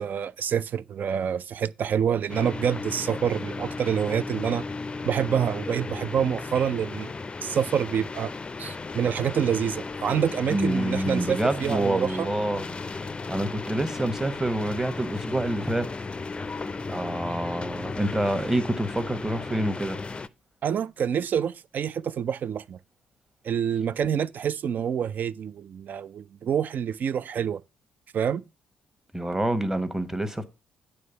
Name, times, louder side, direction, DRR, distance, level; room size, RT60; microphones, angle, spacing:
voice 1, 0.0-4.6 5.0-7.1 7.4-8.3 8.6-12.3 20.6-22.8 23.4-27.6 28.1-28.4, right 8 dB, 50° right, 0.4 m, -27 dB
sound 1, 2.3-20.3, left 3 dB, 25° left, 0.5 m, -35 dB
voice 2, 10.5-15.9 16.5-20.0 29.1-30.4, right 1 dB, 10° right, 1.2 m, -27 dB
9.2 x 3.3 x 6.8 m
figure-of-eight pair, 45°, 4 cm